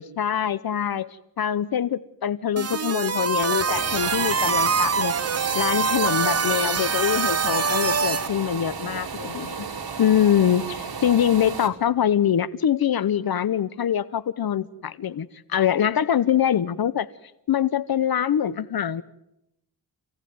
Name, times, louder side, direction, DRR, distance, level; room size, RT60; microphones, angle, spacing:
voice 1, 0.0-5.1 5.5-9.7 10.0-17.1 17.5-19.0, left 9 dB, 65° left, 0.9 m, -24 dB
sound 1, 2.6-8.3, right 5 dB, 40° right, 1.0 m, -24 dB
sound 2, 3.2-11.7, right 5 dB, 65° right, 3.8 m, -34 dB
27.5 x 17.5 x 9.5 m
cardioid pair, 85°, 40 cm